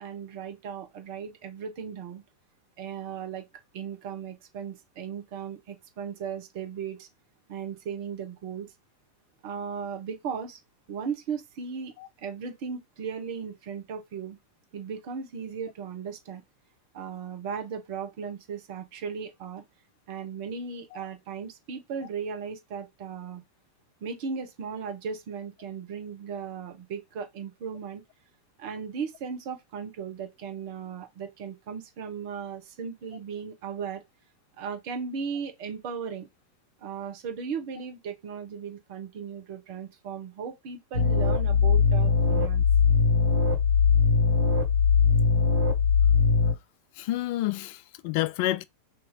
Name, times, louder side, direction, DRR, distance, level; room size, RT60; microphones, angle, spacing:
voice 1, 0.0-2.2 2.8-3.5 3.7-7.1 7.5-8.7 9.4-10.6 10.9-11.9 12.2-14.4 14.7-16.4 16.9-19.6 20.1-23.4 24.0-28.0 28.6-34.0 34.6-36.3 36.8-42.6, right 6 dB, 45° right, 0.9 m, -36 dB
sound 1, 40.9-46.5, left 5 dB, 85° right, 1.1 m, -21 dB
voice 2, 47.0-48.6, left 15 dB, 45° left, 0.3 m, -29 dB
2.8 x 2.8 x 3.8 m
figure-of-eight pair, 90°, 0 cm